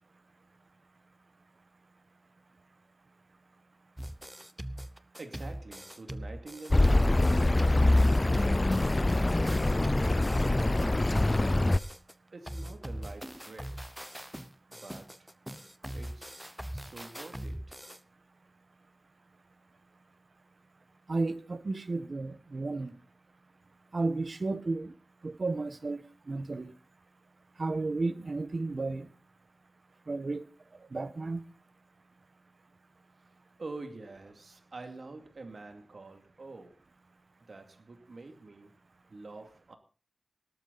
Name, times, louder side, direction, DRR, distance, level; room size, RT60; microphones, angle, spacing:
sound 1, 4.0-12.1 12.5-18.0, equal, 5° right, 0.9 m, -41 dB
voice 1, 5.2-8.2 9.1-11.3 12.3-13.9 14.7-15.3 15.9-17.8 33.6-36.8 37.4-38.7 39.1-39.8, right 3 dB, 80° right, 5 dB, 2.6 m, -47 dB
Accelerating revving vroom, 6.7-11.8, left 2 dB, 30° left, 0.6 m, -24 dB
voice 2, 21.1-23.0 23.9-24.9 25.2-26.7 27.6-29.1 30.1-30.5 30.8-31.4, right 3 dB, 60° right, 11 dB, 1.3 m, -33 dB
18.0 x 12.5 x 4.2 m, 0.37 s
wide cardioid pair, 85°, 0 cm